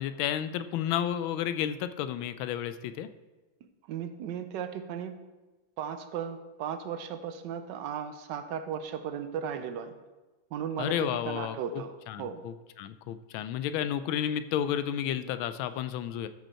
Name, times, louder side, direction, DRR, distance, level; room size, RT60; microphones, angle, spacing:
voice 1, 0.0-3.1 10.8-16.3, left 10 dB, 80° left, 12 dB, 1.3 m, -32 dB
voice 2, 3.6-5.3 5.8-10.0 10.5-12.4, right 8 dB, 70° right, 9 dB, 1.2 m, -36 dB
13.0 x 5.2 x 4.4 m, 1.2 s
omnidirectional pair, 2.2 m